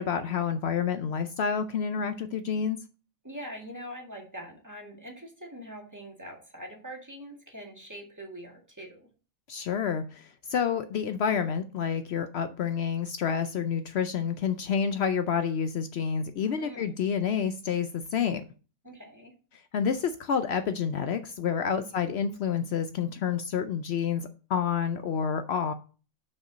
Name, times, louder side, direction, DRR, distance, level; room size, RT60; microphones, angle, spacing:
voice 1, 0.0-2.8 9.5-18.4 19.7-25.7, left 7 dB, 90° left, 9 dB, 0.5 m, -29 dB
voice 2, 3.2-9.1 16.6-16.9 18.8-19.4 21.7-22.0, equal, 10° right, 0 dB, 1.7 m, -43 dB
5.9 x 5.2 x 6.1 m, 0.37 s
omnidirectional pair, 1.7 m